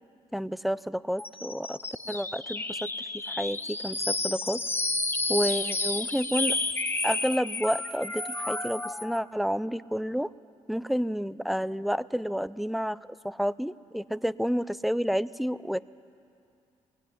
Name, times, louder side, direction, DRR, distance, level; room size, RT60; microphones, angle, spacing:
voice 1, 0.3-1.8 2.1-2.9 3.3-4.6 5.3-6.6 7.0-10.3 10.7-13.0 13.2-15.8, equal, ahead, 18 dB, 0.5 m, -30 dB
sound 1, 1.2-9.2, left 3 dB, 20° left, 1.2 m, -31 dB
20.5 x 17.5 x 10.0 m, 2.5 s
cardioid pair, 80°, 12 cm